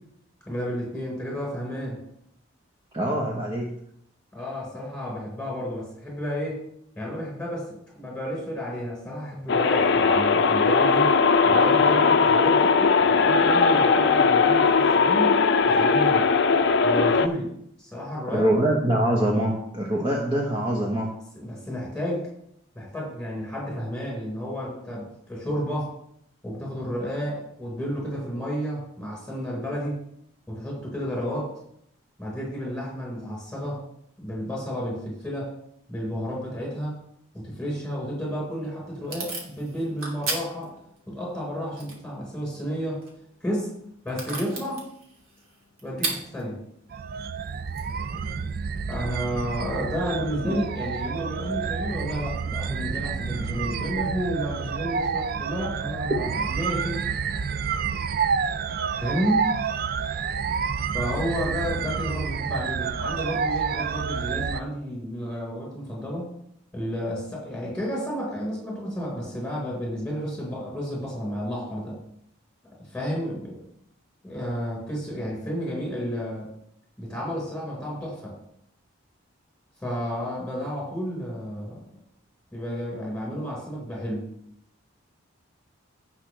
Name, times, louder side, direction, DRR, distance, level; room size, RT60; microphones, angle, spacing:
voice 1, 0.4-2.0 4.3-6.6 6.9-11.1 11.4-15.4 15.6-16.3 16.8-17.5 17.8-18.5 21.3-22.2 22.7-25.9 26.4-30.0 30.5-31.5 32.2-33.8 34.2-35.5 35.9-37.0 37.4-40.7 41.1-43.0 43.4-43.7 44.0-44.8 45.8-46.6 48.4-48.5 48.9-57.0 59.0-59.5 60.9-66.3 66.7-72.0 72.9-73.6 74.2-76.5 77.0-78.3 79.8-81.8 82.5-84.3, equal, 5° left, -3 dB, 4.7 m, -31 dB
voice 2, 2.9-3.7 18.3-21.1 50.4-50.6, right 1 dB, 25° right, -2 dB, 1.1 m, -24 dB
sound 1, 9.5-17.3, left 4 dB, 55° left, 0.6 m, -19 dB
Packing tape duct tape / Tearing, 38.2-49.0, right 3 dB, 80° right, 2.7 m, -39 dB
sound 2, 46.9-64.6, right 6 dB, 45° right, 0.4 m, -29 dB
16.5 x 6.1 x 3.4 m, 0.72 s
head